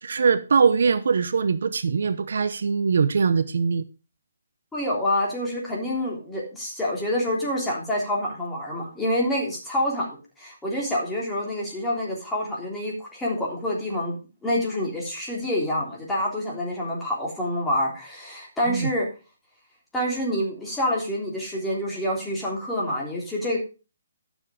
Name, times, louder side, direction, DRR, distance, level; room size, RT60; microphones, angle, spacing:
voice 1, 0.0-3.8 18.7-18.9, right 5 dB, 65° right, 0.8 m, -22 dB
voice 2, 4.7-14.1 14.4-19.1 19.9-23.6, left 1 dB, 5° left, 3.4 m, -27 dB
11.5 x 7.1 x 5.0 m
hypercardioid pair, 160°, 0 cm